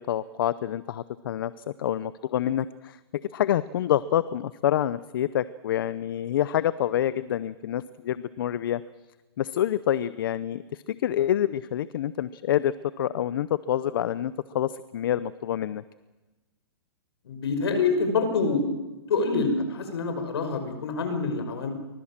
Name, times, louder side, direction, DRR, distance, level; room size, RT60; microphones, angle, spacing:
voice 1, 0.1-1.5 1.8-3.0 3.3-8.8 9.4-15.8, left 11 dB, 55° left, 16 dB, 0.7 m, -27 dB
voice 2, 17.2-18.6 19.1-21.7, left 4 dB, 70° left, 7 dB, 5.7 m, -26 dB
24.0 x 20.5 x 7.5 m, 1.2 s
hypercardioid pair, 155°, 14 cm